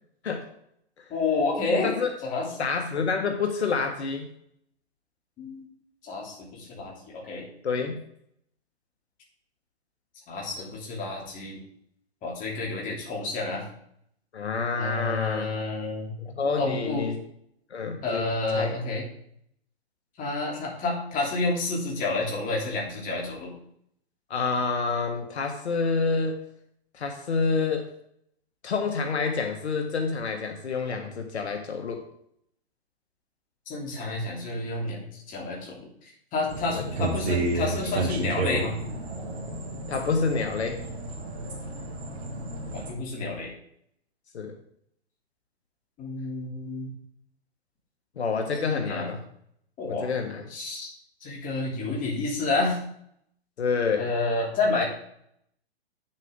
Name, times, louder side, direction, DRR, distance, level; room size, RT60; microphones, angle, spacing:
voice 1, 1.1-1.9 2.2-2.5 5.4-5.6 6.0-7.5 10.3-11.6 12.2-13.6 14.8-16.1 16.6-17.1 18.0-19.0 20.2-23.5 33.7-35.9 36.3-38.7 42.7-43.5 46.0-46.9 48.6-49.1 49.8-50.1 50.5-50.9 51.2-52.8 54.0-54.8, left 3 dB, 25° left, -2 dB, 3.1 m, -29 dB
voice 2, 2.6-4.3 7.6-8.0 14.3-15.5 16.2-17.2 17.7-18.3 18.5-18.8 24.3-26.4 26.9-27.9 28.6-32.0 36.7-36.8 39.9-40.8 44.3-44.6 48.2-49.2 49.8-50.4 53.6-54.1, left 4 dB, 80° left, 4 dB, 1.6 m, -28 dB
sound 1, 36.5-42.9, right 3 dB, 70° right, 2.5 m, -31 dB
9.2 x 7.4 x 3.7 m, 0.70 s
hypercardioid pair, 130°, 33 cm